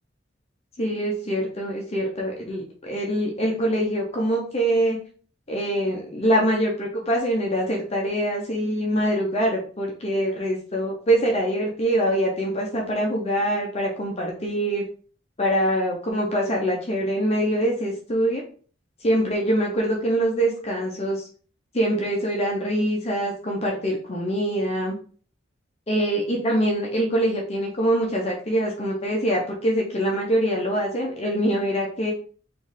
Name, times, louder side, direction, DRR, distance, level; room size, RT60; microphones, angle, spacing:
voice 1, 0.8-5.0 5.5-14.8 15.4-18.4 19.0-21.3 21.7-25.0 25.9-32.1, right 1 dB, 35° left, -1 dB, 0.7 m, -24 dB
4.2 x 2.6 x 3.6 m, 0.42 s
head